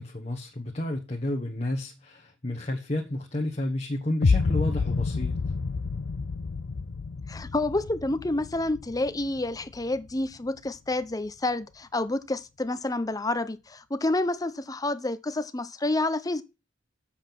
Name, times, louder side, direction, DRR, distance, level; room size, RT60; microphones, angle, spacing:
voice 1, 0.0-5.4, left 1 dB, 35° left, 1.3 m, -31 dB
sound 1, 4.2-10.2, left 4 dB, 70° left, 0.5 m, -29 dB
voice 2, 7.3-16.4, left 2 dB, 20° left, 0.7 m, -29 dB
7.7 x 7.3 x 6.0 m
head